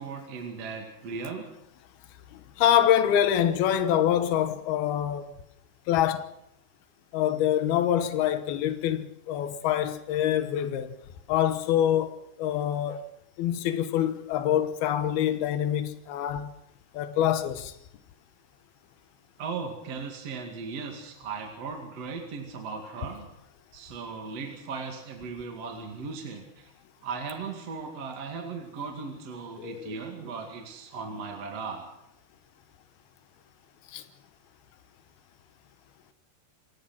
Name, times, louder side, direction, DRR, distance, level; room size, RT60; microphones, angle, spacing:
voice 1, 0.0-1.5 19.4-23.3 23.7-26.7 27.0-31.9, right 5 dB, 45° right, 2.8 m, -37 dB
voice 2, 2.3-5.3 5.9-6.3 7.1-11.0 11.3-13.0 13.4-16.5 16.9-17.8 29.6-29.9 33.9-34.0, left 10 dB, 70° left, 2.9 m, -25 dB
28.0 x 16.5 x 6.0 m
omnidirectional pair, 5.0 m